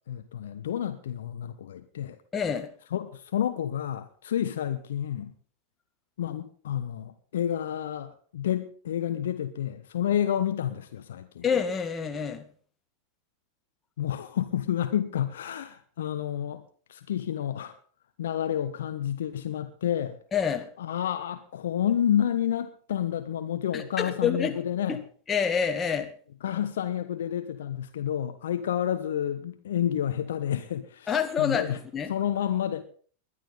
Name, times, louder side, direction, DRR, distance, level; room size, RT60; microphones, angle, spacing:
voice 1, 0.1-2.2 2.9-5.3 6.2-11.4 14.0-16.6 16.9-17.8 18.2-20.2 20.8-25.0 26.4-31.8 32.1-32.8, left 10 dB, 60° left, 1.1 m, -30 dB
voice 2, 2.3-2.7 11.4-12.5 20.3-20.7 23.7-24.5 25.3-26.1 31.1-32.1, left 7 dB, 20° left, 1.9 m, -27 dB
21.0 x 11.5 x 4.1 m
figure-of-eight pair, 90°, 0 cm